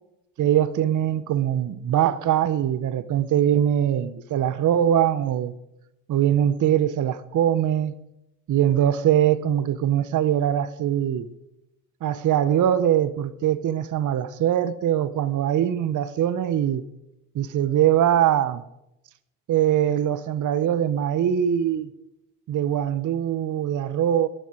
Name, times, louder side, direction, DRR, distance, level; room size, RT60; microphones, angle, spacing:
voice 1, 0.4-5.5 6.1-7.9 8.5-11.3 12.0-16.8 17.3-18.6 19.5-21.9 22.5-24.3, right 10 dB, 45° right, 1.0 m, -22 dB
17.5 x 11.0 x 5.0 m
hypercardioid pair, 65°, 41 cm